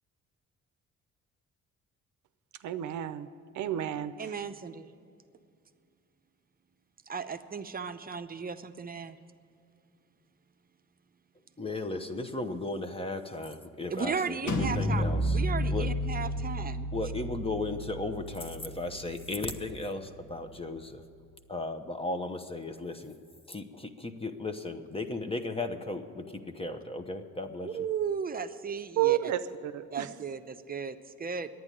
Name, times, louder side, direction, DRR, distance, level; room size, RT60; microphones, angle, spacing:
voice 1, 2.6-3.3 3.5-4.4 29.0-30.1, right 12 dB, 75° right, 11 dB, 0.7 m, -30 dB
voice 2, 4.2-4.9 7.1-9.2 13.9-15.0 15.3-16.9 27.6-29.3 29.9-31.5, right 6 dB, 30° right, 9 dB, 0.7 m, -35 dB
voice 3, 11.6-15.4 15.7-15.9 16.9-21.0 21.5-23.2 23.5-27.9, left 2 dB, 20° left, 8 dB, 1.0 m, -36 dB
sound 1, 14.5-20.1, equal, 80° left, 1.6 m, -32 dB
10.5 x 9.3 x 10.0 m, 2.4 s
cardioid pair, 90°, 30 cm